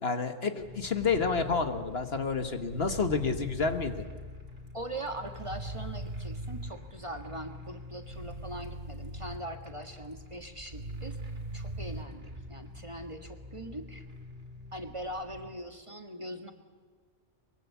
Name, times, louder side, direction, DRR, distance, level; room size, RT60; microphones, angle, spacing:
voice 1, 0.0-4.0, left 4 dB, 55° left, 8 dB, 1.7 m, -29 dB
sound 1, 0.6-15.5, left 2 dB, 50° right, 3.6 m, -47 dB
sound 2, 2.7-4.0 5.4-6.7 8.0-9.4 10.7-12.0, right 2 dB, 85° right, 2.4 m, -40 dB
voice 2, 4.7-11.2 11.5-14.0 14.7-16.5, right 1 dB, 25° right, 6 dB, 1.6 m, -41 dB
23.5 x 22.5 x 8.4 m, 1.5 s
omnidirectional pair, 1.3 m